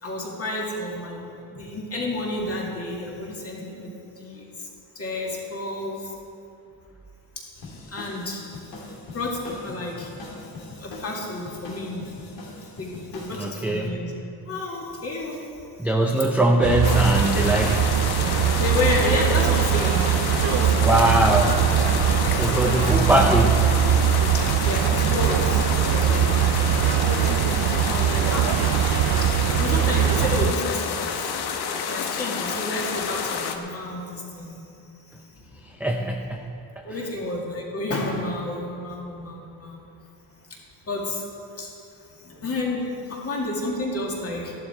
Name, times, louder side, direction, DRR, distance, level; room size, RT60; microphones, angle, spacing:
voice 1, 0.0-4.7 5.0-6.2 7.4-7.5 7.9-8.4 9.1-10.1 10.8-12.0 12.8-15.4 16.7-16.8 18.5-21.1 21.4-21.5 22.6-23.0 24.3-26.5 26.9-28.5 29.2-29.3 29.6-31.2 31.6-34.6 35.1-35.9 36.8-39.9 40.9-41.2 41.5-41.7 42.1-44.5, left 2 dB, 35° left, -2 dB, 2.2 m, -31 dB
sound 1, 7.6-13.4, left 2 dB, 80° left, 3.1 m, -41 dB
voice 2, 13.3-14.0 15.8-17.9 20.8-23.7 35.8-36.4 36.8-36.9, right 1 dB, 5° right, 1 dB, 0.4 m, -22 dB
sound 2, 16.6-30.5, right 10 dB, 60° right, 0.5 m, -21 dB
sound 3, 16.8-33.6, left 7 dB, 65° left, 1.0 m, -29 dB
14.0 x 11.5 x 4.4 m, 2.7 s
cardioid pair, 170°, 42 cm